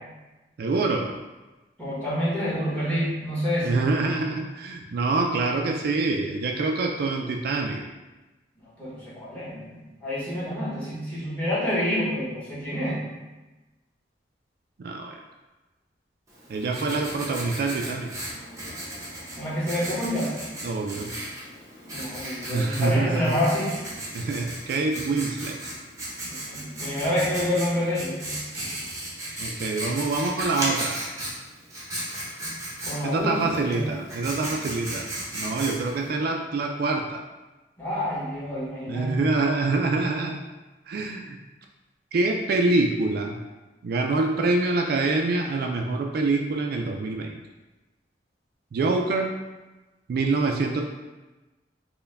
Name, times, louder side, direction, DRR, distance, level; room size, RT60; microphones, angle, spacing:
voice 1, 0.6-1.1 3.6-7.8 14.8-15.2 16.5-18.1 20.6-21.1 22.5-23.4 24.1-25.6 29.4-31.1 33.0-35.1 35.3-37.2 38.9-40.4 40.9-41.4 42.1-43.4 43.8-47.4 48.7-49.3 50.1-50.8, right 3 dB, 60° right, 2 dB, 0.3 m, -25 dB
voice 2, 1.8-3.8 8.8-13.0 19.3-20.3 21.9-23.7 26.2-28.4 32.8-33.9 37.8-39.3, left 1 dB, 10° left, -9 dB, 1.4 m, -28 dB
Writing, 16.3-36.1, right 1 dB, 20° right, 0.8 m, -36 dB
4.4 x 2.2 x 3.4 m, 1.1 s
head